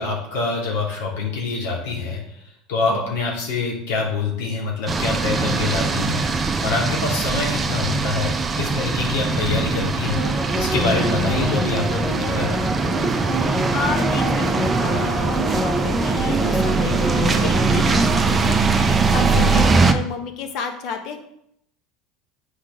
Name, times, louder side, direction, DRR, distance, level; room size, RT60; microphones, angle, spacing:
voice 1, 0.0-2.4 2.7-6.3 6.6-10.3 10.5-12.6 19.3-19.6, left 4 dB, 85° left, -2 dB, 2.3 m, -25 dB
sound 1, 4.9-19.9, right 4 dB, 20° right, 0.6 m, -21 dB
sound 2, 10.2-19.5 19.9-20.0, equal, 25° left, 1.1 m, -27 dB
voice 2, 13.3-18.6 19.0-21.2, left 5 dB, 55° left, 5 dB, 1.2 m, -31 dB
8.3 x 4.8 x 3.7 m, 0.75 s
supercardioid pair, 120°, 0 cm